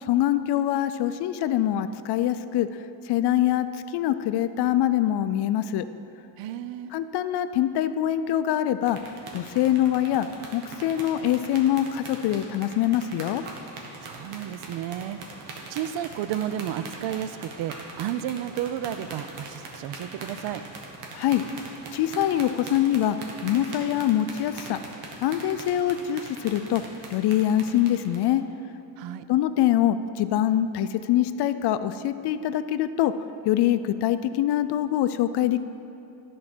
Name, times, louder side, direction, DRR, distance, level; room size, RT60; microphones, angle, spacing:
voice 1, 0.0-2.7 3.1-3.7 3.9-5.9 6.9-9.0 9.3-10.3 10.5-13.4 21.1-21.4 21.9-23.2 23.4-24.8 25.2-26.8 27.1-28.4 29.3-33.1 33.5-35.6, left 12 dB, 55° left, 12 dB, 0.5 m, -24 dB
voice 2, 6.4-6.9 14.0-20.6 29.0-29.3, right 10 dB, 65° right, 13 dB, 0.5 m, -32 dB
sound 1, 8.8-28.3, right 3 dB, 85° right, 1.4 m, -42 dB
11.0 x 4.7 x 6.1 m, 2.8 s
cardioid pair, 130°, 49 cm